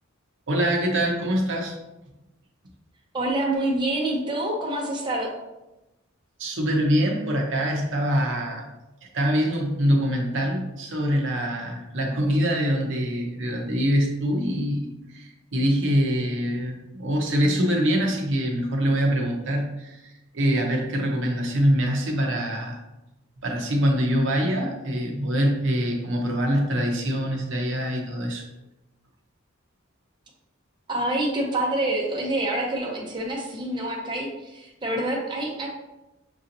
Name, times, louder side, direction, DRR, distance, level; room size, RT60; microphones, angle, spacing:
voice 1, 0.5-1.7 6.4-8.6 9.1-22.8 23.4-28.4, equal, 60° right, 1 dB, 0.7 m, -24 dB
voice 2, 3.1-5.3 30.9-35.7, right 1 dB, 20° right, -2 dB, 0.7 m, -27 dB
6.2 x 2.8 x 2.6 m, 0.97 s
head